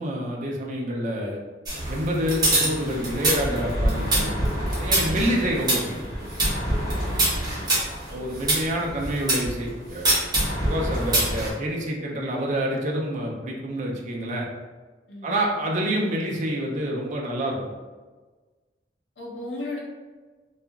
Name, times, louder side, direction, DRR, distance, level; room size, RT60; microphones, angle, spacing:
voice 1, 0.0-1.4 1.9-4.3 4.8-6.0 8.1-10.1 10.7-14.5 15.2-17.7, equal, 45° right, -1 dB, 0.4 m, -27 dB
sound 1, 1.6-9.5 10.0-11.5, right 1 dB, 25° right, 0.8 m, -25 dB
voice 2, 7.0-7.5 15.1-15.4 19.2-19.8, left 2 dB, 80° left, -4 dB, 0.8 m, -36 dB
2.8 x 2.4 x 2.3 m, 1.3 s
head